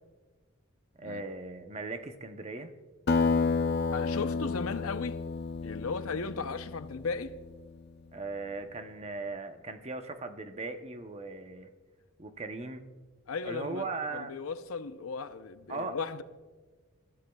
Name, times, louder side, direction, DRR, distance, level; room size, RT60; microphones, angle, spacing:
voice 1, 1.0-2.7 8.1-11.7 12.2-12.8 13.4-14.3 15.7-16.0, right 3 dB, 30° right, 0.7 m, -38 dB
Acoustic guitar, 3.1-7.9, left 4 dB, 50° left, 0.4 m, -31 dB
voice 2, 3.9-5.2 5.6-7.4 13.3-13.9 14.1-16.2, left 4 dB, 85° left, 0.7 m, -36 dB
23.0 x 13.0 x 2.3 m
head